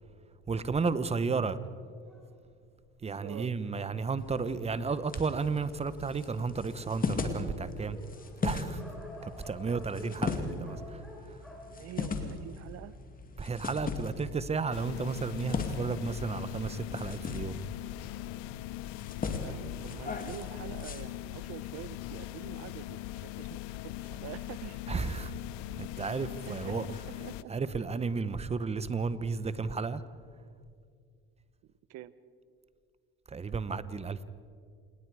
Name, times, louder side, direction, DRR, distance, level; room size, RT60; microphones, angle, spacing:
voice 1, 0.5-1.6 3.0-8.0 8.4-8.8 9.2-11.0 11.3-11.4 13.4-17.5 24.9-25.3 25.8-26.9 27.5-30.0 33.3-34.2, right 4 dB, 20° right, 15 dB, 1.0 m, -33 dB
Dog, 2.0-5.0 5.7-5.8 6.1-6.2 6.4-12.8, left 1 dB, ahead, 5.6 m, -50 dB
voice 2, 3.2-3.5 11.7-13.0 19.3-24.8 26.5-27.5 31.9-32.1, right 12 dB, 60° right, 16 dB, 0.9 m, -46 dB
sound 1, 4.2-21.0, left 4 dB, 30° left, 2.3 m, -39 dB
sound 2, 14.7-27.4, left 16 dB, 75° left, 0.7 m, -41 dB
27.0 x 19.5 x 4.9 m, 2.3 s
supercardioid pair, 90°, 30 cm